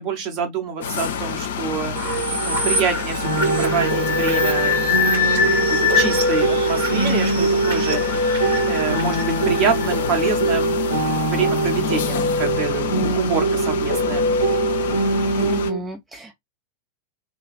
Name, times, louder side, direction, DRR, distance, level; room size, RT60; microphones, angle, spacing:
voice 1, 0.0-2.0 2.4-4.8 5.1-8.0 8.3-10.8 11.1-14.3, right 6 dB, 40° right, 1.0 m, -27 dB
sound 1, 0.8-15.7, left 6 dB, 60° left, 0.5 m, -28 dB
sound 2, 1.9-10.6, left 2 dB, 60° right, 1.8 m, -24 dB
sound 3, 3.2-15.8, right 2 dB, 85° right, 0.8 m, -22 dB
voice 2, 15.4-16.3, equal, 10° right, 0.5 m, -33 dB
2.9 x 2.4 x 2.4 m
figure-of-eight pair, 90°, 0 cm